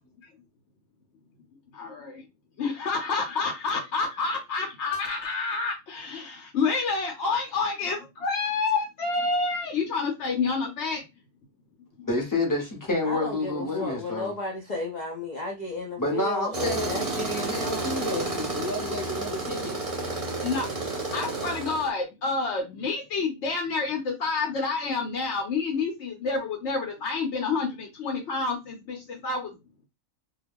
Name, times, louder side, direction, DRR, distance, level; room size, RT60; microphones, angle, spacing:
voice 1, 1.7-2.2 2.6-11.0 13.7-14.0 17.6-17.7 20.4-20.7 21.1-29.5, left 4 dB, 60° left, 0.9 m, -28 dB
voice 2, 12.0-14.3 16.0-19.8, left 2 dB, 20° left, 0.7 m, -29 dB
voice 3, 13.0-17.9, left 1 dB, 80° left, 0.4 m, -34 dB
Tools, 16.5-21.9, right 2 dB, 35° right, 0.6 m, -31 dB
2.3 x 2.3 x 3.4 m
omnidirectional pair, 1.5 m